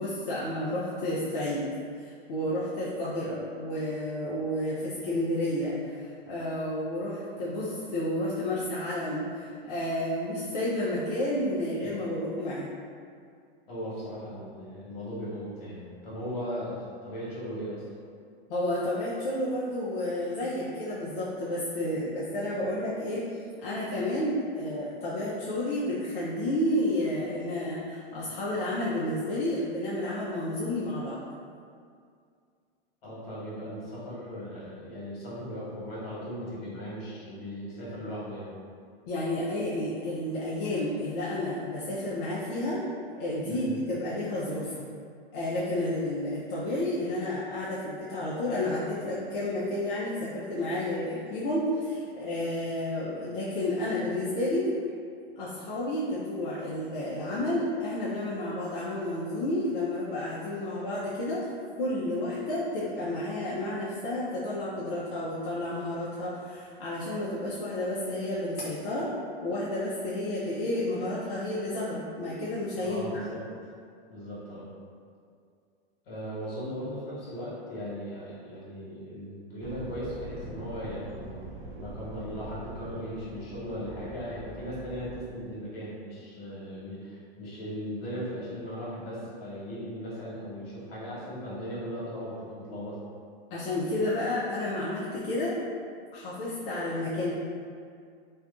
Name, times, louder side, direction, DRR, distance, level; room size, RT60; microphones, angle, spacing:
voice 1, 0.0-1.6 2.0-12.7 18.5-31.2 39.1-42.8 43.2-44.9 45.3-54.7 55.4-61.5 61.8-69.1 69.4-73.0 93.5-95.6 96.1-97.3, left 1 dB, 55° left, -7 dB, 0.5 m, -31 dB
voice 2, 13.7-17.8 33.0-38.5 43.4-43.7 72.8-73.4 74.1-74.7 76.0-81.3 81.6-93.0, equal, 70° left, -8 dB, 1.2 m, -38 dB
sound 1, 79.6-85.2, right 1 dB, 30° right, 0.4 m, -43 dB
2.5 x 2.2 x 2.4 m, 2.3 s
hypercardioid pair, 120°, 30 cm